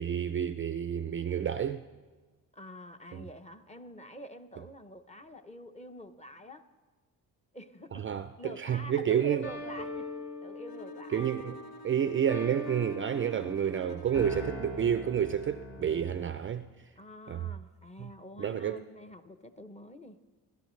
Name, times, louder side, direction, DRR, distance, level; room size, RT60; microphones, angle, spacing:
voice 1, 0.0-1.8 3.1-3.3 7.9-9.5 11.1-11.6 11.8-16.7 17.3-17.5 18.0-18.1 18.4-18.8, right 9 dB, 35° right, 0.4 m, -30 dB
voice 2, 2.5-6.7 7.5-8.0 8.4-10.1 10.4-11.3 17.0-20.2, equal, 15° left, 0.8 m, -46 dB
sound 1, 9.4-16.4, left 1 dB, 50° left, 3.1 m, -42 dB
Bowed string instrument, 10.7-14.8, equal, 75° left, 0.9 m, -50 dB
25.5 x 12.5 x 3.2 m
cardioid pair, 105°, 38 cm